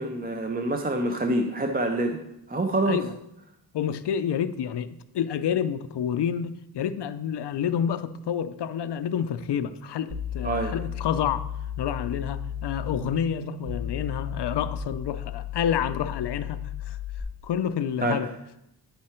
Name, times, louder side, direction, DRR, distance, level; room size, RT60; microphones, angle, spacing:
voice 1, 0.0-2.2 2.5-3.0 10.4-10.8 18.0-18.2, right 1 dB, 25° right, 0.5 m, -26 dB
voice 2, 3.7-11.4 11.8-17.0 17.4-18.3, left 8 dB, 80° left, 0.5 m, -29 dB
sound 1, 10.1-17.2, left 9 dB, 80° right, 1.7 m, -34 dB
9.5 x 5.7 x 4.3 m
wide cardioid pair, 155°, 41 cm